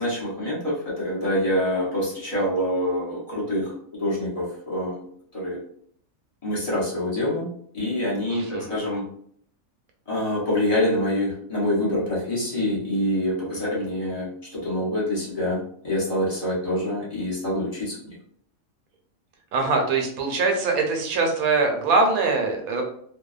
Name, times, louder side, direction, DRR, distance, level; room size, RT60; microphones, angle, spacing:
voice 1, 0.0-5.0 5.3-5.6 6.4-9.0 10.1-18.0, left 1 dB, 35° left, -6 dB, 0.6 m, -26 dB
voice 2, 8.3-8.7 19.5-22.8, right 3 dB, 80° right, 2 dB, 1.1 m, -23 dB
2.7 x 2.1 x 2.3 m, 0.64 s
omnidirectional pair, 1.5 m